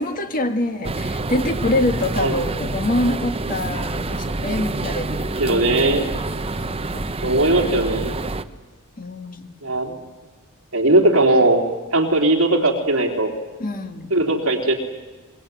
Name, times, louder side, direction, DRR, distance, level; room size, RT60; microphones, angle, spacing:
voice 1, 0.0-6.0 6.5-7.1 9.0-9.6 13.6-14.1, left 1 dB, 40° left, 7 dB, 1.7 m, -25 dB
sound 1, 0.8-8.4, right 2 dB, 25° right, 0.9 m, -27 dB
voice 2, 5.4-6.1 7.2-8.1 9.6-9.9 10.7-11.6 11.9-13.3 14.1-14.7, right 2 dB, 65° right, 2 dB, 3.7 m, -18 dB
24.0 x 22.5 x 9.4 m, 1.3 s
head